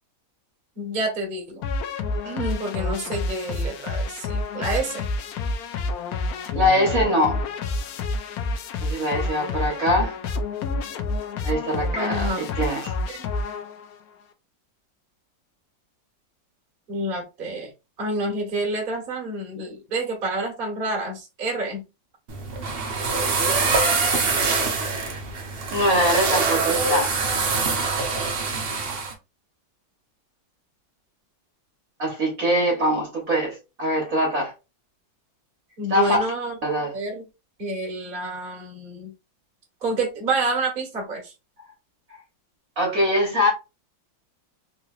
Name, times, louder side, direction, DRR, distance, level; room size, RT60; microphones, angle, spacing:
voice 1, 0.8-1.6 2.2-5.1 11.9-12.5 13.2-13.3 16.9-17.7 18.0-21.8 35.8-36.5 36.9-37.2 37.6-39.1 39.8-41.3, right 2 dB, 35° right, 1.2 m, -28 dB
sound 1, 1.6-14.0, left 3 dB, 75° left, 0.8 m, -29 dB
voice 2, 6.5-7.4 8.8-10.1 11.4-13.0 25.7-27.1 32.0-34.5 35.9-36.3 36.6-37.0 42.8-43.5, equal, 50° right, 1.3 m, -23 dB
sound 2, 22.3-29.1, right 4 dB, 70° right, 0.5 m, -24 dB
3.6 x 3.0 x 2.3 m
omnidirectional pair, 2.1 m